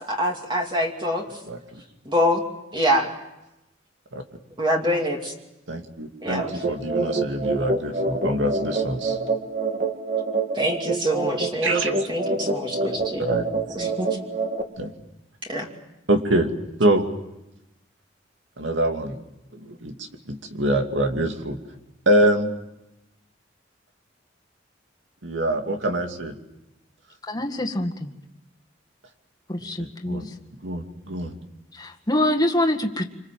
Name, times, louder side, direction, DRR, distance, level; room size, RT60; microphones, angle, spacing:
voice 1, 0.1-1.2 2.0-2.4 2.7-3.1 4.6-5.3 6.2-6.6 10.5-13.2 13.8-14.2 15.5-15.7, equal, 25° right, 1 dB, 2.7 m, -25 dB
voice 2, 1.5-1.8 4.1-4.2 5.7-9.2 11.6-11.9 13.2-13.5 14.8-14.9 16.1-16.5 16.8-17.1 18.6-19.2 19.5-19.9 20.3-21.6 22.1-22.5 25.2-26.4 29.8-30.3 30.6-31.4, right 1 dB, 90° right, 5 dB, 2.6 m, -24 dB
sound 1, 6.4-14.6, right 3 dB, 45° right, 2.4 m, -26 dB
voice 3, 27.3-28.2 29.5-30.2 31.7-33.0, left 1 dB, 20° left, 3 dB, 1.9 m, -25 dB
27.0 x 26.0 x 7.7 m, 0.94 s
head